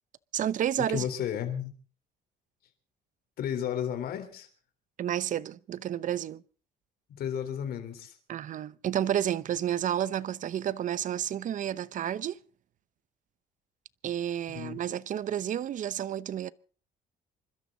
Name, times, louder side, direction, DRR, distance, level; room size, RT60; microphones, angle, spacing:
voice 1, 0.3-1.0 5.0-6.4 8.3-12.4 14.0-16.5, right 10 dB, 50° right, 0.8 m, -31 dB
voice 2, 0.9-1.7 3.4-4.5 7.2-8.1 14.5-14.8, left 9 dB, 65° left, 4.0 m, -33 dB
28.0 x 13.0 x 4.0 m
cardioid pair, 110°, 17 cm